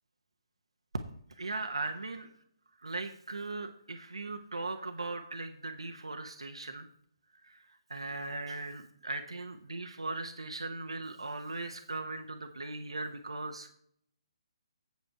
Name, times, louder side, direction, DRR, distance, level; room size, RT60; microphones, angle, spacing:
voice 1, 1.4-2.3 2.8-6.9 7.4-13.7, right 3 dB, 85° right, 5 dB, 1.1 m, -39 dB
8.4 x 8.1 x 4.7 m, 0.64 s
figure-of-eight pair, 140°, 3 cm